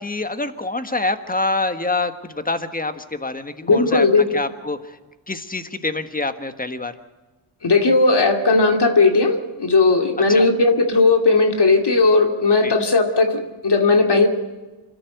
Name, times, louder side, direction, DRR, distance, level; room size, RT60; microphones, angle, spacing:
voice 1, 0.0-4.1 4.3-4.8 5.3-6.9 10.3-10.5 12.6-12.8, left 2 dB, 15° left, 9 dB, 1.5 m, -26 dB
voice 2, 3.6-4.4 7.6-14.3, left 3 dB, 55° left, 4 dB, 2.5 m, -16 dB
25.5 x 13.5 x 8.0 m, 1.2 s
wide cardioid pair, 90°, 49 cm